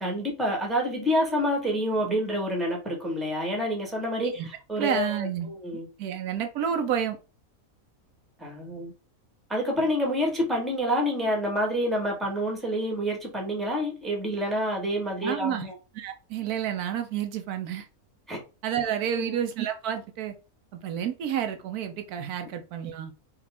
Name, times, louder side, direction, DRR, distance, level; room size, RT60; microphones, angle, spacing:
voice 1, 0.0-5.9 8.4-8.9 9.5-15.7 18.3-18.4 19.1-19.4, equal, ahead, 1.1 m, -28 dB
voice 2, 4.8-5.5 6.0-7.2 15.2-15.6 15.9-17.9 18.6-20.3 20.7-23.1, right 9 dB, 85° right, 1.2 m, -30 dB
4.8 x 2.4 x 3.4 m
omnidirectional pair, 1.5 m